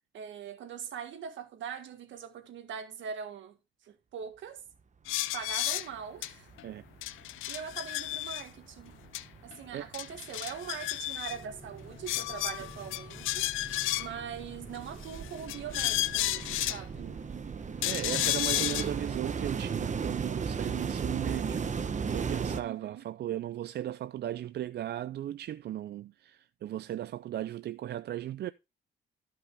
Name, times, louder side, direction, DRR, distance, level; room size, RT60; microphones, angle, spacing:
voice 1, 0.1-3.6 3.8-4.6 5.3-6.5 7.5-8.9 9.4-13.5 14.0-17.1 22.6-23.1, right 7 dB, 75° right, 1.7 m, -42 dB
sound 1, 5.1-5.9 6.2-6.3 6.6-6.7 7.0-8.4 9.1-9.2 9.5-9.6 9.9-11.4 12.1-14.2 15.0-16.8 17.8-18.9, left 16 dB, 90° left, 0.5 m, -32 dB
sound 2, 5.9-6.0 6.3-7.3 7.6-22.6, right 6 dB, 35° right, 1.0 m, -37 dB
sound 3, 11.3-18.5, left 1 dB, ahead, 6.2 m, -52 dB
voice 2, 17.8-28.5, right 12 dB, 55° right, 0.4 m, -37 dB
13.0 x 5.7 x 3.5 m
cardioid pair, 90°, 20 cm